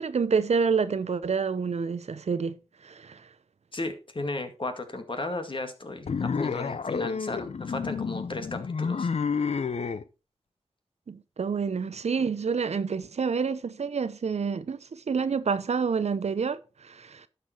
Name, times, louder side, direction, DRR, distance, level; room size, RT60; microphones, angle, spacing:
voice 1, 0.0-2.6 2.8-3.2 11.1-17.3, right 5 dB, 85° right, 0.7 m, -28 dB
voice 2, 3.7-9.1 9.4-9.5, left 2 dB, 50° left, 1.9 m, -35 dB
sound 1, 6.1-10.0, left 5 dB, 80° left, 0.7 m, -30 dB
11.5 x 6.8 x 4.4 m
wide cardioid pair, 55°, 11 cm